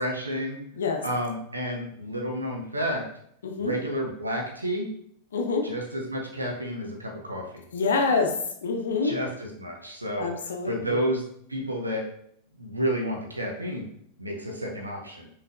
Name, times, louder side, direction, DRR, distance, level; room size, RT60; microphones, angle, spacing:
voice 1, 0.0-0.6 1.0-3.0 3.6-4.9 5.6-7.6 9.0-10.3 10.6-11.2 11.5-12.1 12.6-13.8 14.2-15.3, equal, 80° right, 0 dB, 0.7 m, -30 dB
voice 2, 0.7-1.0 3.4-3.7 5.3-5.7 7.7-9.2 10.2-11.0, left 4 dB, 65° left, 4 dB, 0.7 m, -26 dB
5.7 x 3.2 x 2.5 m, 0.69 s
figure-of-eight pair, 90°, 0 cm